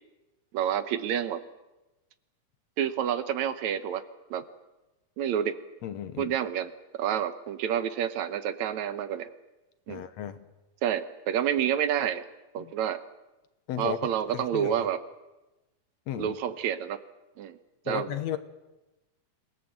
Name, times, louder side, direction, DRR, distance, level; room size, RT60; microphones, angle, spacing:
voice 1, 0.5-1.4 2.8-4.0 4.3-4.4 5.2-5.6 6.2-9.3 9.9-10.0 10.8-12.3 12.5-13.0 13.8-15.0 16.2-17.0 17.4-17.6 17.9-18.1, right 9 dB, 70° right, 11 dB, 2.2 m, -29 dB
voice 2, 5.8-6.3 9.9-10.4 12.6-12.7 13.7-14.0 14.3-14.7 16.1-16.4 17.9-18.4, left 10 dB, 70° left, 11 dB, 2.1 m, -34 dB
27.0 x 18.0 x 7.9 m, 1.1 s
omnidirectional pair, 3.5 m